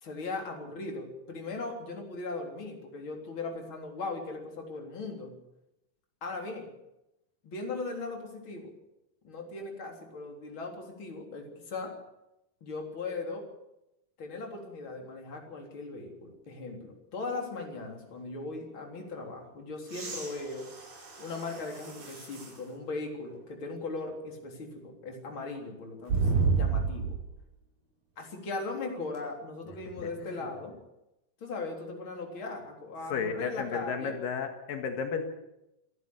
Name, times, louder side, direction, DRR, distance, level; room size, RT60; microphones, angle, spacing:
voice 1, 0.0-5.3 6.2-6.7 7.4-8.7 9.2-12.0 12.6-13.5 14.2-20.7 21.2-27.2 28.2-30.8 31.4-34.2, left 3 dB, 35° left, 1 dB, 4.2 m, -38 dB
sound 1, 19.8-22.6 23.3-23.4 26.1-27.3 29.1-29.2, right 5 dB, 80° right, 6.8 m, -31 dB
voice 2, 30.0-30.4 33.1-35.2, left 6 dB, 85° left, 5 dB, 3.4 m, -33 dB
27.0 x 11.5 x 8.5 m, 0.89 s
omnidirectional pair, 3.9 m